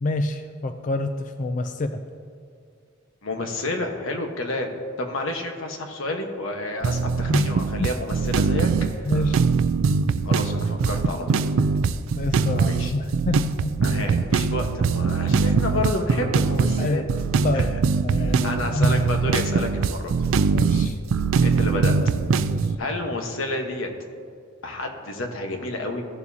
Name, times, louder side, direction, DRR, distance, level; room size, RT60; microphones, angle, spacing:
voice 1, 0.0-2.0 7.3-7.4 9.0-9.5 12.2-13.7 16.8-17.1 17.4-17.8 18.0-19.0 20.5-21.0 22.4-22.7, left 1 dB, 40° left, 7 dB, 0.4 m, -27 dB
voice 2, 3.2-4.7 5.0-9.1 10.2-11.4 12.6-12.9 13.8-17.0 17.5-17.8 18.1-20.1 21.3-21.9 22.8-23.9 24.6-26.0, left 2 dB, 90° left, 3 dB, 1.2 m, -30 dB
sound 1, 6.8-22.8, right 5 dB, 80° right, 0.4 m, -22 dB
15.5 x 7.1 x 2.8 m, 2.2 s
head